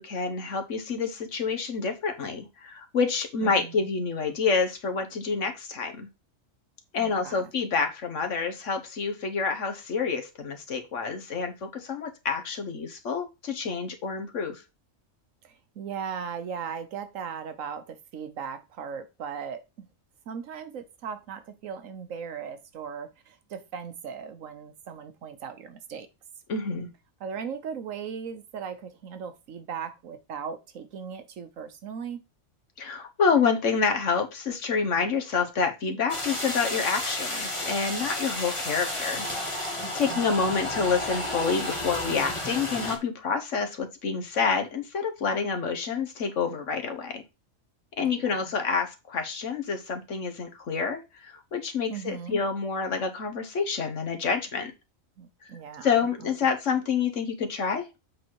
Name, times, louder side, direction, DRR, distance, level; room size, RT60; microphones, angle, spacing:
voice 1, 0.0-6.1 6.9-14.6 26.5-26.9 32.8-39.3 39.8-47.2 48.0-54.7 55.8-57.9, left 5 dB, 65° left, 1.5 m, -28 dB
voice 2, 3.4-3.9 7.0-7.5 15.4-19.9 20.3-26.1 27.2-32.2 40.0-40.9 48.0-48.5 51.9-52.4 55.2-56.5, right 7 dB, 75° right, 1.3 m, -38 dB
sound 1, 36.1-43.0, left 1 dB, 25° left, 1.4 m, -32 dB
7.9 x 4.1 x 4.6 m
omnidirectional pair, 1.4 m